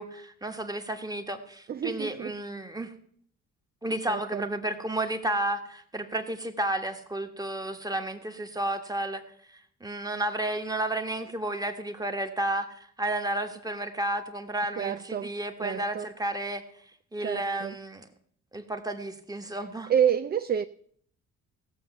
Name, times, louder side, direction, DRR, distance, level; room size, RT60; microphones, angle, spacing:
voice 1, 0.0-2.9 3.8-9.2 9.8-16.6 17.1-18.0 18.5-19.9, right 1 dB, 10° right, 1.6 m, -32 dB
voice 2, 1.7-2.3 4.1-4.5 14.8-15.4 15.6-16.1 17.2-17.8 19.9-20.7, right 8 dB, 30° right, 0.4 m, -28 dB
16.5 x 7.1 x 6.8 m
cardioid pair, 90°, 30 cm